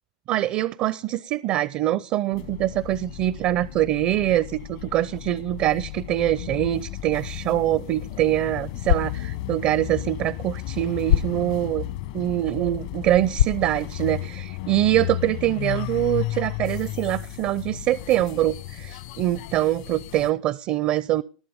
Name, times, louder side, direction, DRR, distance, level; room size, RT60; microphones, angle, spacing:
voice 1, 0.3-11.9 12.1-21.2, right 14 dB, 45° right, 20 dB, 0.5 m, -24 dB
sound 1, 2.3-20.3, left 15 dB, 65° left, 1.3 m, -34 dB
sound 2, 8.7-14.7, left 11 dB, 85° left, 0.6 m, -29 dB
19.0 x 7.4 x 5.1 m, 0.36 s
hypercardioid pair, 105°, 3 cm